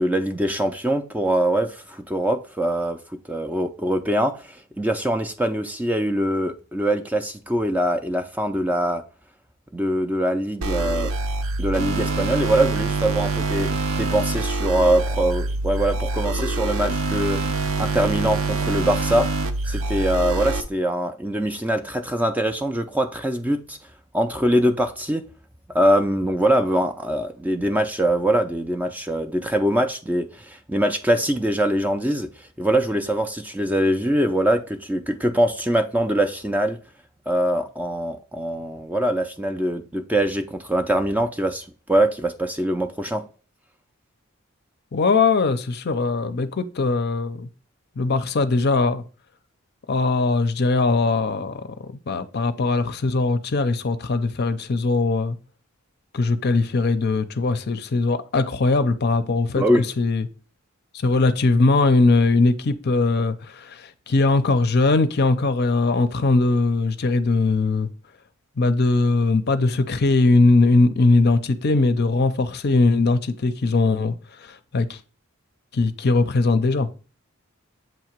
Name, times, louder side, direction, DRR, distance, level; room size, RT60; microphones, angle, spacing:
voice 1, 0.0-3.0 3.3-9.0 9.7-11.1 11.6-13.7 14.0-17.4 17.8-19.3 19.6-23.8 24.1-25.2 25.7-32.3 32.6-36.8 37.3-43.3 59.5-59.9, right 1 dB, 5° right, 0.4 m, -23 dB
sound 1, 10.6-20.6, right 3 dB, 65° right, 0.7 m, -25 dB
voice 2, 44.9-47.5 48.0-49.0 49.9-51.7 52.1-55.4 56.1-60.3 60.9-67.9 68.6-74.1 74.4-75.0 75.7-76.9, left 3 dB, 50° left, 0.5 m, -20 dB
7.8 x 2.9 x 4.4 m
head